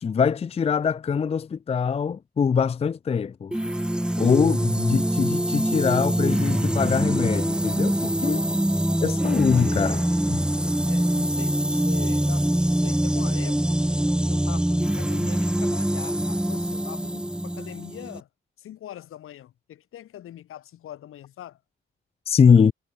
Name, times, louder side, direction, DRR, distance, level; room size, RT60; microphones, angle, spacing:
voice 1, 0.0-3.6 4.2-8.4 9.0-10.0 10.3-10.4 22.3-22.7, left 6 dB, 30° left, 0.5 m, -23 dB
sound 1, 3.5-18.2, right 1 dB, 5° right, 1.0 m, -24 dB
voice 2, 8.2-8.5 8.9-9.0 9.5-10.2 10.8-13.9 14.3-18.3 18.6-21.6, left 12 dB, 85° left, 4.5 m, -42 dB
cardioid pair, 100°, 21 cm